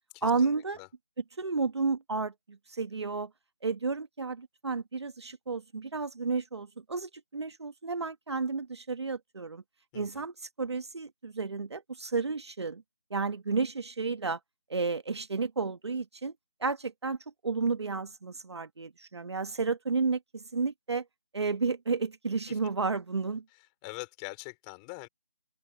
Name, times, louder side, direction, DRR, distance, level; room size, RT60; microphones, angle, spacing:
voice 1, 0.2-0.8 1.4-3.3 3.6-9.6 9.9-12.8 13.1-14.4 14.7-16.3 16.6-17.2 17.4-21.0 21.3-23.4, right 4 dB, 50° right, 1.7 m, -32 dB
voice 2, 23.8-25.1, left 31 dB, 10° left, 4.3 m, -42 dB
open air
figure-of-eight pair, 170°, 18 cm